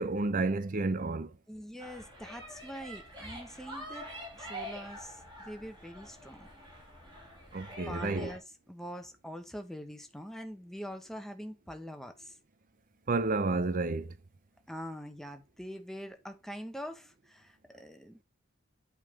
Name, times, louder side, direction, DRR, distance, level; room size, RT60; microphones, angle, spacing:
voice 1, 0.0-1.3 7.5-8.3 13.1-14.1, right 3 dB, 40° right, 0.6 m, -30 dB
voice 2, 1.5-4.1 4.3-6.5 7.9-8.4 8.7-12.3 14.7-18.2, equal, ahead, 1.1 m, -44 dB
sound 1, 1.8-8.4, equal, 20° right, 3.9 m, -46 dB
8.3 x 3.8 x 5.0 m
head